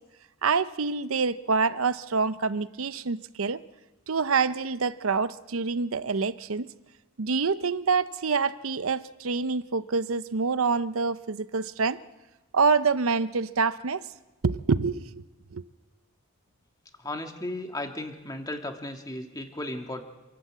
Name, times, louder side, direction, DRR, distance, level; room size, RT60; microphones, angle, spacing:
voice 1, 0.4-3.6 4.1-6.7 7.2-12.0 12.5-14.0 14.4-15.2 15.5-15.6, right 4 dB, 75° right, 0.7 m, -26 dB
voice 2, 17.0-20.0, left 1 dB, 15° left, 1.8 m, -35 dB
27.0 x 11.5 x 8.2 m
head